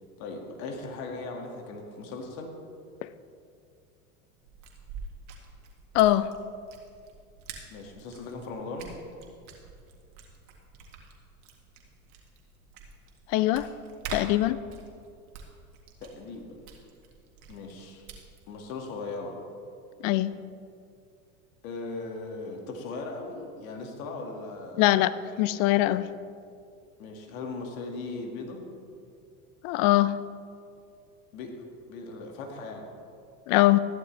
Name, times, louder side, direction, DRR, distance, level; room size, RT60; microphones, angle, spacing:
voice 1, 0.2-2.5 7.7-8.9 16.0-16.6 17.5-18.1 18.5-19.4 21.6-25.0 27.0-28.6 31.3-31.5 31.9-32.9, left 3 dB, 70° left, 2 dB, 2.1 m, -38 dB
sound 1, 4.4-18.5, right 4 dB, 70° right, 1.9 m, -46 dB
voice 2, 5.9-6.3 13.3-13.7 14.1-14.6 20.0-20.4 24.8-25.1 25.4-26.1 29.6-30.2 33.5-33.8, left 16 dB, 55° left, 15 dB, 0.6 m, -22 dB
14.0 x 11.5 x 3.3 m, 2.4 s
hypercardioid pair, 90°, 44 cm